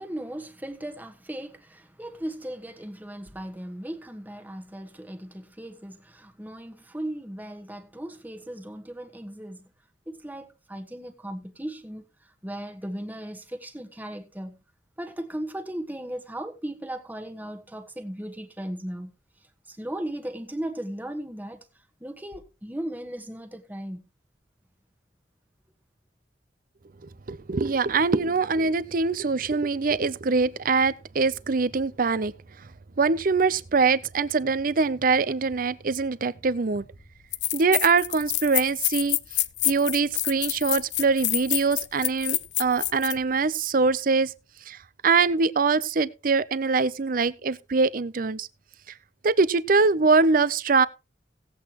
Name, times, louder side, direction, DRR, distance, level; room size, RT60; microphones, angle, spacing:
voice 1, 0.0-9.7 10.1-14.6 15.0-19.1 19.7-21.6 22.0-24.0, right 1 dB, 10° right, 1.3 m, -37 dB
voice 2, 27.3-32.3 33.0-36.8 37.5-39.2 39.6-44.3 44.7-44.8 45.0-48.5 49.2-50.9, right 4 dB, 50° right, 0.6 m, -23 dB
sound 1, 36.8-36.9 37.3-43.2, left 16 dB, 80° left, 0.6 m, -27 dB
17.5 x 8.3 x 3.0 m
head